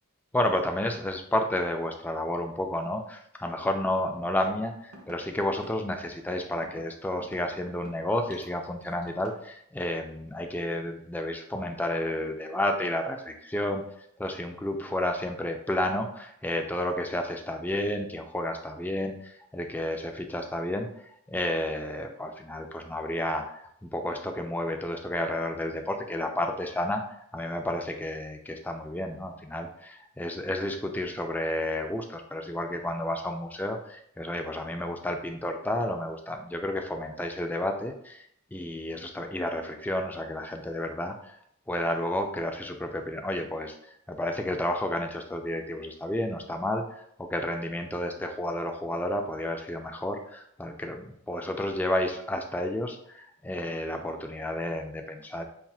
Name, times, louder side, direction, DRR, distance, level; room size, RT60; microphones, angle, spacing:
voice 1, 0.3-13.8 14.2-20.9 21.3-27.0 27.3-41.3 41.7-43.7 44.1-46.8 47.2-55.4, left 1 dB, 10° left, 4 dB, 0.3 m, -31 dB
sound 1, 4.4-4.5 4.9-5.2 5.6-5.7 6.6-6.8 7.2-7.9 8.3-9.4, right 1 dB, 85° right, 0.8 m, -48 dB
5.5 x 2.4 x 2.3 m, 0.73 s
head